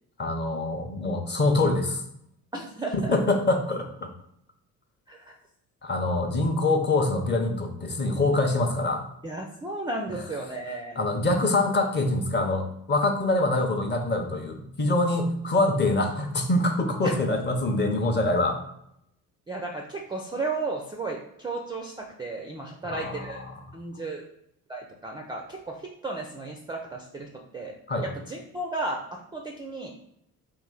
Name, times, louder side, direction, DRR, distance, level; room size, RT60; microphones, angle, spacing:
voice 1, 0.2-2.0 2.9-4.1 5.8-9.1 11.0-18.6 22.9-23.6 27.9-28.0, left 2 dB, 25° left, 4 dB, 0.7 m, -25 dB
voice 2, 2.5-3.2 5.1-5.4 9.2-11.0 17.0-17.1 19.5-23.4 23.7-24.2 24.7-27.7 28.0-29.9, right 2 dB, 10° right, 1 dB, 0.4 m, -34 dB
3.1 x 2.4 x 3.7 m, 0.75 s
figure-of-eight pair, 50°, 46 cm